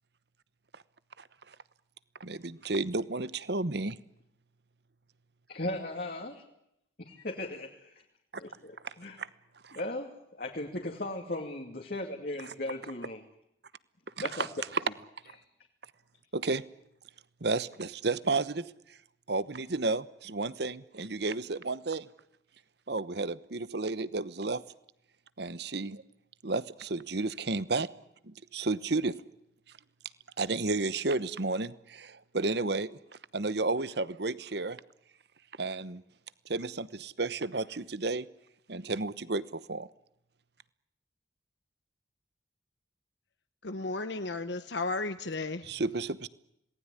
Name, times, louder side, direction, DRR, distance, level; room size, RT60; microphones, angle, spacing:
voice 1, 2.2-4.0 8.8-8.9 9.2-9.3 9.6-9.8 14.2-14.5 14.7-14.8 16.3-16.6 17.4-18.7 19.3-22.1 22.9-24.6 25.4-26.0 26.4-27.9 28.2-29.2 30.4-33.0 33.3-34.8 35.6-36.0 36.5-38.3 38.7-39.9 45.6-46.3, right 3 dB, 60° right, 16 dB, 1.0 m, -32 dB
voice 2, 5.5-6.3 7.4-7.7 8.4-9.2 9.7-13.2 14.2-14.5, left 1 dB, 50° left, 1 dB, 2.5 m, -37 dB
voice 3, 43.6-45.7, left 3 dB, 65° left, 9 dB, 1.0 m, -34 dB
27.0 x 19.0 x 9.8 m, 0.80 s
head